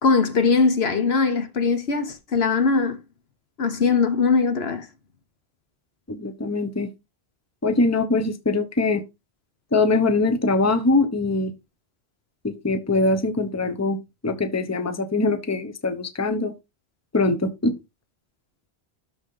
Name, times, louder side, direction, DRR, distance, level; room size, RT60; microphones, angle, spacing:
voice 1, 0.0-3.0 3.6-4.9, left 4 dB, 75° left, 1.4 m, -21 dB
voice 2, 6.1-6.9 7.6-9.0 9.7-11.5 12.4-14.0 14.2-16.5 17.1-17.7, left 3 dB, 15° left, 0.8 m, -22 dB
12.5 x 4.4 x 3.8 m
omnidirectional pair, 1.1 m